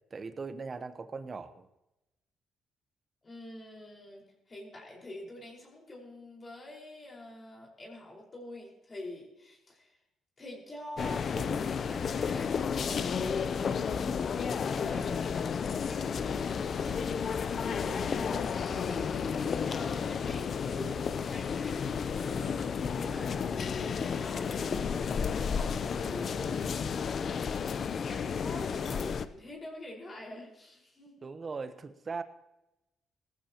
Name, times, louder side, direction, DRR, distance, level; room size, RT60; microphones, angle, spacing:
voice 1, 0.1-1.7 31.2-32.2, right 4 dB, 35° right, 10 dB, 1.0 m, -39 dB
voice 2, 3.2-10.0 10.4-14.2 14.7-15.2 15.7-27.5 27.9-31.3, left 1 dB, 35° left, -2 dB, 5.0 m, -46 dB
sound 1, 11.0-29.3, left 6 dB, 50° left, 0.6 m, -32 dB
18.0 x 14.5 x 3.0 m, 0.93 s
cardioid pair, 90°, 0 cm